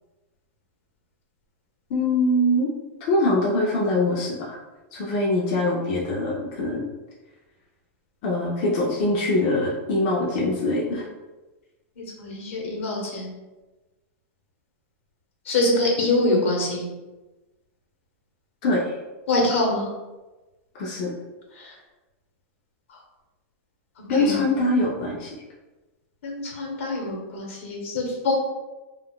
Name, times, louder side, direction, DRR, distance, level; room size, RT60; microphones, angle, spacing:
voice 1, 1.9-2.7 3.1-4.6 4.9-6.8 8.2-11.1 18.6-19.0 20.7-21.1 24.1-25.4, left 1 dB, 35° left, -4 dB, 0.4 m, -23 dB
voice 2, 12.0-13.3 15.4-16.9 19.3-19.9 21.5-21.7 22.9-23.0 24.1-24.4 26.2-28.3, left 2 dB, 70° left, 0 dB, 0.9 m, -25 dB
3.6 x 2.3 x 2.2 m, 1.1 s
supercardioid pair, 180°, 7 cm